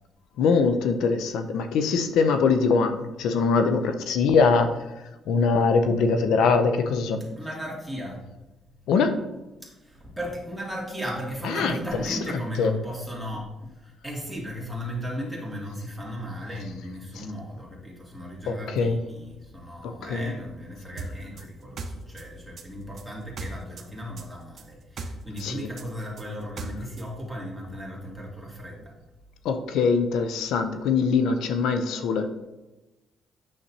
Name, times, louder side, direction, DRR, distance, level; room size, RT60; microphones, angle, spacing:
voice 1, 0.4-4.7 5.3-7.3 8.9-9.2 11.4-11.7 12.1-12.2 12.6-12.7 17.2-17.3 18.5-19.0 19.8-20.3 25.4-25.7 29.4-32.3, left 5 dB, 85° left, 8 dB, 0.5 m, -23 dB
voice 2, 7.3-8.2 9.6-29.0, equal, ahead, -4 dB, 2.5 m, -36 dB
sound 1, 21.0-23.9 24.2-27.1, right 3 dB, 55° right, 0.9 m, -37 dB
8.6 x 6.6 x 2.8 m, 1.0 s
cardioid pair, 90°, 0 cm